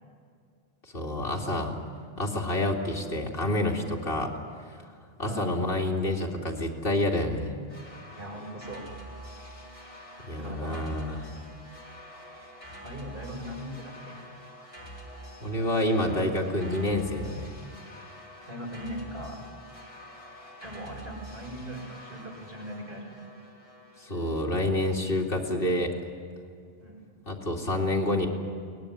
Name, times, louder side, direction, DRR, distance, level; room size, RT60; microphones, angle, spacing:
voice 1, 0.9-1.8 2.2-4.3 5.2-7.5 10.3-11.2 15.4-17.5 24.0-25.9 27.3-28.3, left 1 dB, 65° left, 0 dB, 2.9 m, -28 dB
voice 2, 5.2-5.6 8.1-8.8 10.4-10.9 12.8-14.2 18.5-19.4 20.6-23.1 26.8-27.1, equal, 65° right, -1 dB, 6.0 m, -40 dB
sound 1, 7.7-24.5, equal, 30° left, 3.8 m, -46 dB
22.5 x 19.0 x 10.0 m, 2.2 s
omnidirectional pair, 1.0 m